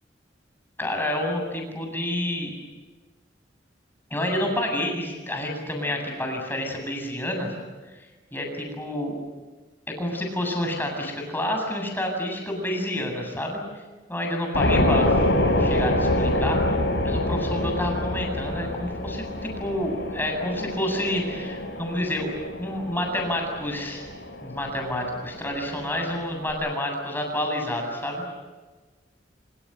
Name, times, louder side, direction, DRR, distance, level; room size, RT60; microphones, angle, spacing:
voice 1, 0.8-2.5 4.1-7.5 8.3-9.2 9.9-13.6 14.1-15.1 15.6-16.8 17.0-24.0 24.4-28.2, left 1 dB, 10° left, 2 dB, 7.9 m, -29 dB
sound 1, 14.5-26.5, left 1 dB, 70° left, 5.6 m, -26 dB
27.0 x 26.0 x 8.1 m, 1.3 s
head